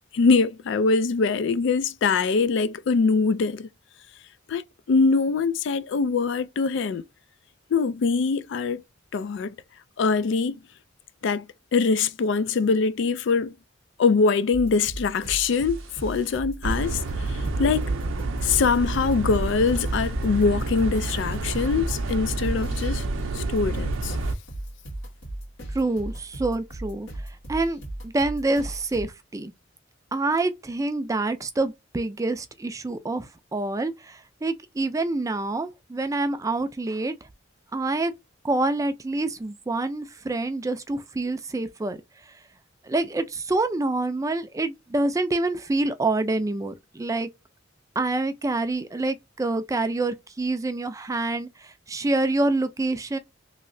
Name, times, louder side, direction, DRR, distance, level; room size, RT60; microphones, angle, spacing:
voice 1, 0.1-3.7 4.5-7.0 7.7-8.8 9.1-9.6 10.0-10.6 11.2-11.5 11.7-13.5 14.0-17.9 18.4-23.0 23.3-24.2, left 4 dB, 65° left, 0.4 m, -23 dB
sound 1, 14.5-29.1, right 1 dB, 85° left, 1.9 m, -37 dB
sound 2, 15.4-15.7 16.2-16.3 16.6-24.3, right 2 dB, 90° right, 0.5 m, -28 dB
voice 2, 25.7-27.1 27.5-29.5 30.1-37.1 37.7-38.1 38.4-42.0 42.8-47.3 48.0-53.2, right 2 dB, 15° right, 0.4 m, -27 dB
3.1 x 2.8 x 2.6 m
head